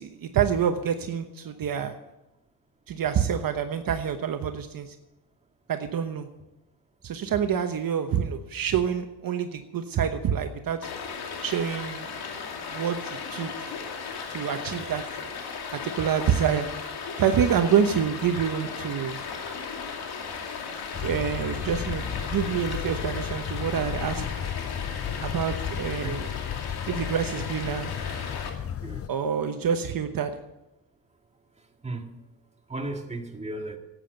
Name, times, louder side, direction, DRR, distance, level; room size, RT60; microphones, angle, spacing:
voice 1, 0.0-1.9 2.9-4.9 5.7-6.3 7.0-10.9 11.4-12.1 12.7-13.7 14.3-15.0 15.7-16.7 17.2-19.2 21.0-24.2 25.2-26.3 26.9-27.9 29.1-30.4, right 8 dB, 60° right, 1.1 m, -27 dB
Stream, 10.8-28.5, left 5 dB, 75° left, 2.5 m, -36 dB
sound 1, 20.9-29.1, left 9 dB, 35° left, 0.6 m, -34 dB
voice 2, 32.7-33.8, right 2 dB, 15° right, 1.9 m, -35 dB
12.0 x 9.0 x 7.9 m
cardioid pair, 90°, 39 cm